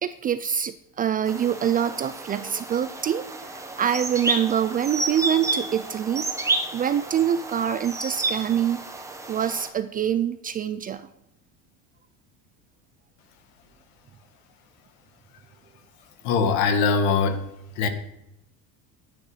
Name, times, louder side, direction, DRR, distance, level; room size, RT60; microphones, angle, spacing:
voice 1, 0.0-6.3 6.7-8.9 9.3-11.1, right 9 dB, 25° right, 12 dB, 0.4 m, -25 dB
sound 1, 1.3-9.7, right 2 dB, 10° right, 1.1 m, -31 dB
voice 2, 16.2-17.4 17.8-17.9, left 5 dB, 70° left, 7 dB, 1.9 m, -21 dB
9.8 x 9.4 x 5.7 m, 0.84 s
cardioid pair, 150°, 37 cm